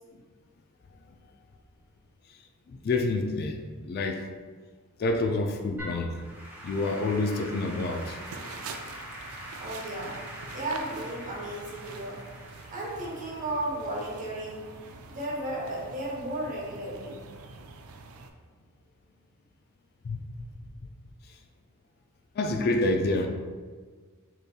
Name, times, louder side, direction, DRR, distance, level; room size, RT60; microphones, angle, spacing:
voice 1, 2.7-3.6 3.8-4.3 5.0-6.2 6.6-8.2 20.0-20.2 20.5-20.7 22.4-23.3, left 2 dB, 50° left, 5 dB, 0.3 m, -27 dB
Applause / Keyboard (musical), 5.8-15.1, equal, 10° right, 0.8 m, -44 dB
sound 1, 7.9-18.3, right 3 dB, 70° right, 0.4 m, -45 dB
voice 2, 9.6-12.2 12.7-14.7 15.1-17.2, right 1 dB, 40° right, -3 dB, 1.0 m, -34 dB
5.2 x 3.0 x 2.2 m, 1.5 s
head